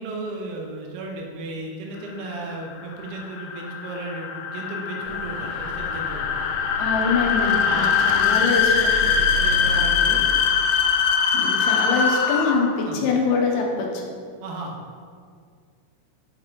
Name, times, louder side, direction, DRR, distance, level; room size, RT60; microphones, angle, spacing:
voice 1, 0.0-6.4 7.6-8.0 9.2-10.3 12.8-13.1 14.4-14.8, right 2 dB, 90° right, 0 dB, 3.0 m, -34 dB
sound 1, 2.2-12.8, left 6 dB, 85° left, 2.6 m, -22 dB
sound 2, 5.0-10.4, equal, 65° right, 1.7 m, -34 dB
voice 2, 6.8-8.9 11.3-13.9, left 4 dB, 70° left, 0 dB, 1.9 m, -24 dB
6.8 x 6.0 x 3.7 m, 2.1 s
omnidirectional pair, 4.5 m